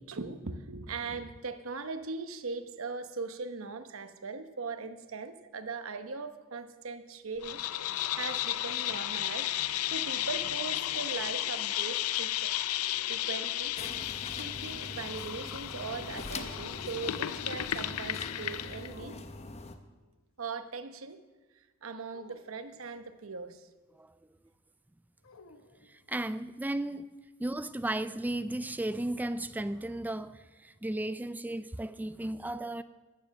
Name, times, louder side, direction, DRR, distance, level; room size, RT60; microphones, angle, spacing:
voice 1, 0.0-9.5 9.9-12.5 13.1-13.7 14.4-19.2 20.4-21.2 21.5-23.7 26.9-27.1, right 4 dB, 70° right, 9 dB, 1.0 m, -40 dB
sound 1, 7.4-18.9, left 13 dB, 90° left, 0.5 m, -34 dB
sound 2, 11.7-13.4 15.8-17.1 18.9-19.7 22.1-23.2 25.2-26.4, left 3 dB, 70° left, 1.0 m, -59 dB
sound 3, 13.8-19.8, left 2 dB, 30° left, 0.9 m, -43 dB
voice 2, 25.9-27.1 27.4-32.8, right 1 dB, 10° right, 14 dB, 0.3 m, -35 dB
14.0 x 9.6 x 6.4 m, 1.2 s
head